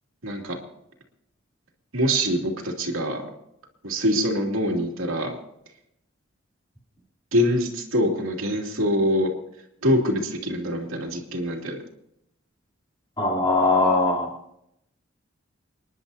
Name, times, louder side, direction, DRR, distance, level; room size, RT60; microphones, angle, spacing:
voice 1, 0.2-0.6 1.9-3.2 3.8-5.3 7.3-9.3 9.8-11.8, equal, 80° right, 1 dB, 2.6 m, -24 dB
voice 2, 13.2-14.4, left 2 dB, 20° left, -3 dB, 3.2 m, -21 dB
30.0 x 11.0 x 2.7 m, 0.80 s
head